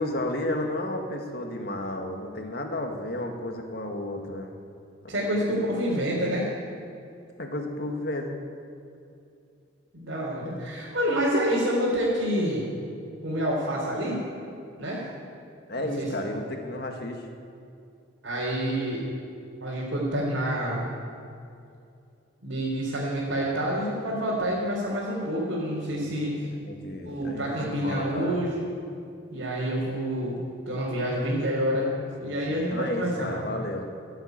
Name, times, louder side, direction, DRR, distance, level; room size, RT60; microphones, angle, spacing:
voice 1, 0.0-4.5 5.0-5.3 7.4-8.4 15.7-17.2 25.9-28.4 32.2-33.9, left 1 dB, 55° left, 3 dB, 1.7 m, -33 dB
voice 2, 5.1-6.5 9.9-12.7 13.2-14.2 14.8-15.0 15.8-16.3 18.2-19.0 19.6-20.9 22.4-26.5 27.0-28.7 29.3-31.9 32.2-33.5, equal, 80° right, -7 dB, 3.5 m, -28 dB
15.5 x 8.1 x 9.1 m, 2.5 s
head